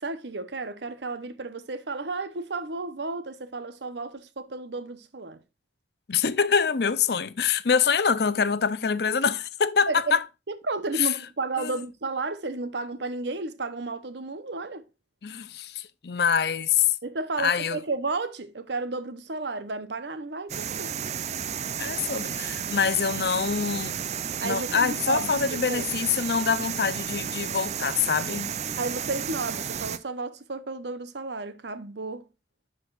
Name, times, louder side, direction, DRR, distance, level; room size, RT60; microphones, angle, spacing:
voice 1, 0.0-5.4 9.9-10.2 10.5-14.8 17.0-20.9 24.4-25.8 28.8-32.2, right 3 dB, 70° right, 0.9 m, -33 dB
voice 2, 6.1-10.2 10.9-11.1 11.6-11.8 15.2-16.9 17.4-17.8 21.8-24.0 24.4-28.5, left 6 dB, 60° left, 0.5 m, -25 dB
sound 1, 20.5-30.0, right 8 dB, 40° right, 0.4 m, -32 dB
12.0 x 5.1 x 2.4 m
head